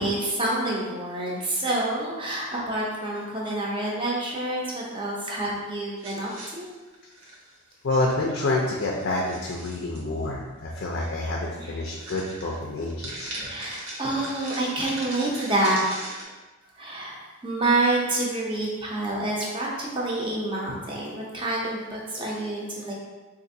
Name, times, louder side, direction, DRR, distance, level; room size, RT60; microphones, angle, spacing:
voice 1, 0.0-6.6 13.4-15.8 16.7-22.9, right 2 dB, 25° right, -3 dB, 0.6 m, -28 dB
sound 1, 6.0-7.5 7.9-8.2 8.4-10.0 11.0-11.1 11.5-11.6 12.0-16.2, right 1 dB, 60° right, 0.8 m, -39 dB
voice 2, 7.8-13.3, left 2 dB, 50° left, -2 dB, 0.4 m, -28 dB
3.9 x 2.5 x 2.6 m, 1.2 s
head